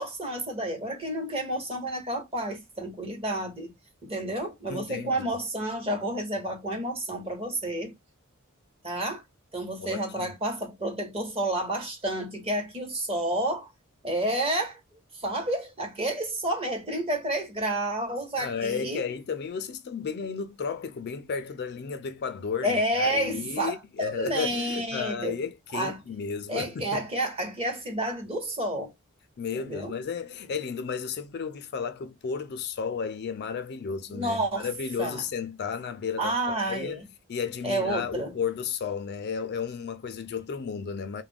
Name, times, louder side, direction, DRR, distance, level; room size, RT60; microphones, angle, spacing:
voice 1, 0.0-3.7 4.0-7.9 8.8-9.2 9.5-13.7 14.0-14.8 15.2-19.0 22.6-25.4 25.7-26.0 26.5-28.9 29.5-29.9 34.1-34.7 35.0-35.2 36.2-37.0 37.6-38.3, right 1 dB, 25° right, 0.9 m, -30 dB
voice 2, 4.7-5.2 9.8-10.3 18.4-27.0 29.4-37.0 37.3-41.2, left 6 dB, 50° left, 0.4 m, -33 dB
2.3 x 2.1 x 3.4 m
head